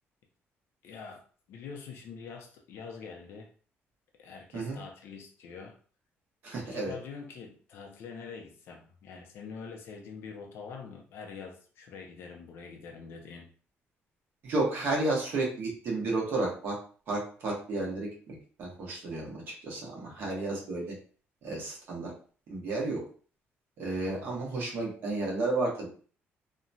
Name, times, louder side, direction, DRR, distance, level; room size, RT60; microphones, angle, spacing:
voice 1, 0.8-1.2 1.5-3.5 4.2-5.8 6.6-13.5 24.0-24.3, left 5 dB, 65° left, 3 dB, 0.6 m, -45 dB
voice 2, 6.4-6.9 14.4-16.8 17.1-21.0 21.4-22.1 22.5-23.0 23.8-25.9, right 2 dB, 50° right, -3 dB, 1.1 m, -32 dB
2.9 x 2.2 x 2.6 m, 0.42 s
cardioid pair, 175°, 4 cm